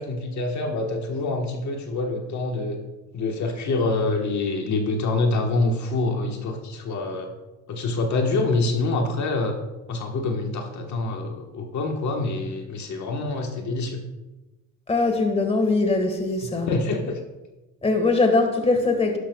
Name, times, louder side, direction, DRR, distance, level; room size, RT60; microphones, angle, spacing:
voice 1, 0.0-2.8 3.1-7.3 7.7-9.6 9.9-14.0 16.7-17.2, left 2 dB, 60° left, 3 dB, 1.4 m, -26 dB
voice 2, 14.9-16.7 17.8-19.2, left 3 dB, 20° left, 5 dB, 1.6 m, -21 dB
11.5 x 11.5 x 2.3 m, 1.1 s
cardioid pair, 100°, 32 cm